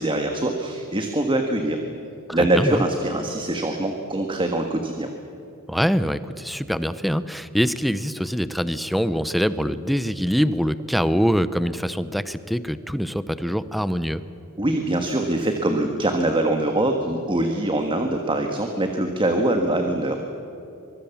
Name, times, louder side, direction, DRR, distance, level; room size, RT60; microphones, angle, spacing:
voice 1, 0.0-1.8 2.3-5.1 14.6-20.2, right 1 dB, 25° right, 4 dB, 1.6 m, -23 dB
voice 2, 2.3-2.8 5.7-14.2, equal, ahead, 13 dB, 0.7 m, -24 dB
24.5 x 23.5 x 7.2 m, 2.9 s
head